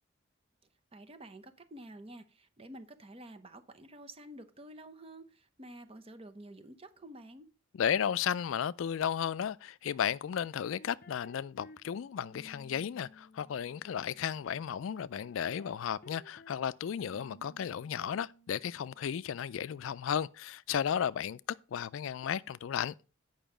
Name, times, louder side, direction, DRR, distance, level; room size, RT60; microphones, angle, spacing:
voice 1, 0.9-7.5, right 1 dB, 30° right, 0.8 m, -50 dB
voice 2, 7.8-21.4 21.7-22.9, left 8 dB, 70° left, 0.3 m, -34 dB
sound 1, 10.4-11.8 12.2-14.7 15.2-16.6 17.0-19.0, left 1 dB, 45° left, 0.7 m, -56 dB
9.1 x 5.5 x 5.0 m
head